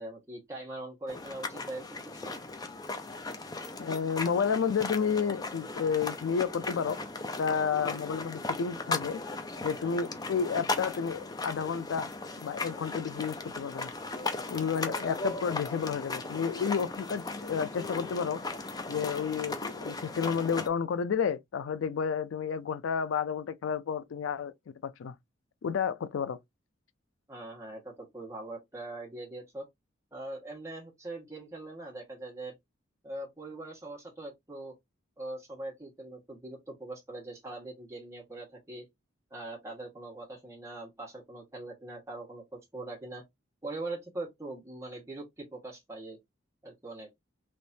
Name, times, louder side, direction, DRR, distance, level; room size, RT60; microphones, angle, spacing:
voice 1, 0.0-2.4 27.3-29.6 30.1-32.5 33.0-34.7 35.2-38.9 39.3-43.2 43.6-46.2 46.6-47.1, right 2 dB, 15° right, 1.5 m, -42 dB
sound 1, 1.1-20.7, left 3 dB, 20° left, 0.5 m, -37 dB
voice 2, 3.8-7.0 7.4-9.2 9.6-12.1 12.4-13.9 14.5-18.4 18.9-25.2 25.6-26.4, left 6 dB, 75° left, 0.4 m, -31 dB
3.4 x 3.0 x 2.7 m
head